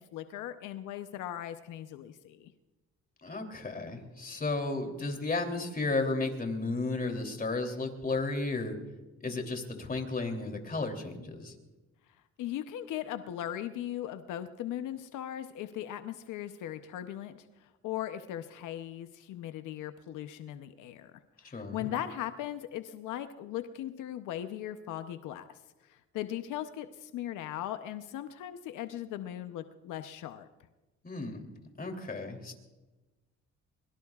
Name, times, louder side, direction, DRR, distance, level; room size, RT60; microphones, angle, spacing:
voice 1, 0.0-2.5 12.4-21.1 21.4-25.5 25.8-30.5, left 12 dB, 90° left, 9 dB, 0.8 m, -38 dB
voice 2, 3.2-8.7 9.2-11.5 21.5-21.9 31.0-31.4 31.8-32.5, left 3 dB, 30° left, 4 dB, 3.1 m, -33 dB
23.0 x 22.0 x 2.4 m, 1.1 s
cardioid pair, 90°, 30 cm